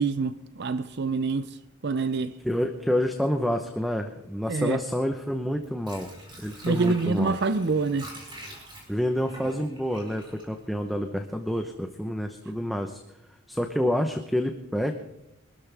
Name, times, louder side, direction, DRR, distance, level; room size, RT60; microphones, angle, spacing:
voice 1, 0.0-1.6 1.8-2.3 4.5-4.8 6.6-8.1, right 4 dB, 50° right, 0.5 m, -26 dB
voice 2, 2.4-6.1 6.4-7.4 8.9-13.0 13.5-14.9, equal, ahead, 0.8 m, -28 dB
Water / Sink (filling or washing), 5.6-11.3 11.7-11.8, right 1 dB, 20° right, 4.4 m, -45 dB
24.5 x 13.0 x 3.4 m
head